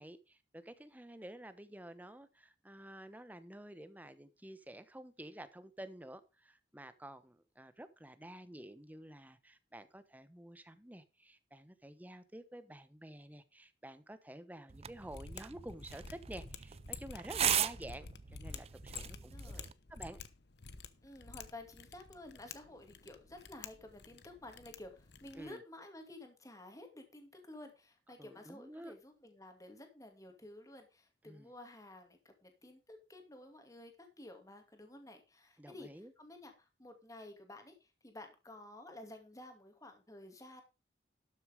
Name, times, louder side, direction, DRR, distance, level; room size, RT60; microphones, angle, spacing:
voice 1, 0.0-18.1 18.3-19.5 19.9-20.2 25.3-25.6 28.2-28.9 31.2-31.5 35.6-36.1, right 1 dB, 10° right, 1.0 m, -50 dB
sound 1, 14.7-19.7, right 10 dB, 35° right, 0.5 m, -38 dB
Mechanisms, 15.0-25.5, left 5 dB, 70° left, 1.0 m, -50 dB
voice 2, 19.1-19.7 21.0-40.6, left 1 dB, 20° left, 2.4 m, -53 dB
12.5 x 6.8 x 5.0 m
head